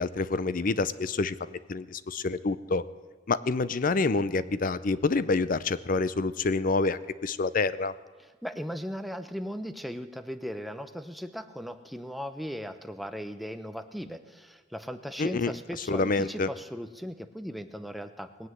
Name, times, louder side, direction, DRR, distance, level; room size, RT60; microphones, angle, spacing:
voice 1, 0.0-2.8 3.3-7.9 15.2-15.5 15.9-16.5, left 3 dB, 45° left, 16 dB, 0.5 m, -27 dB
voice 2, 8.2-18.5, equal, ahead, 9 dB, 0.7 m, -38 dB
20.0 x 8.0 x 7.7 m, 1.4 s
head